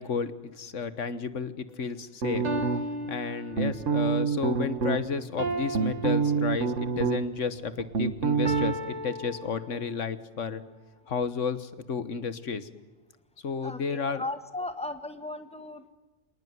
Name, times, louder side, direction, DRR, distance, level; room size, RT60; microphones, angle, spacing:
voice 1, 0.0-2.4 3.1-10.6 11.1-12.7 13.4-14.2, left 5 dB, 85° left, 13 dB, 1.6 m, -32 dB
sound 1, 1.7-1.8 2.4-4.0 5.4-7.0 8.4-10.1, right 1 dB, 35° right, 1.8 m, -35 dB
sound 2, 2.2-3.1 3.5-5.0 5.5-7.4 7.7-8.7, right 5 dB, 85° right, 1.8 m, -27 dB
voice 2, 13.6-15.9, left 2 dB, 5° left, 9 dB, 1.5 m, -36 dB
27.0 x 19.0 x 9.5 m, 1.2 s
omnidirectional pair, 1.2 m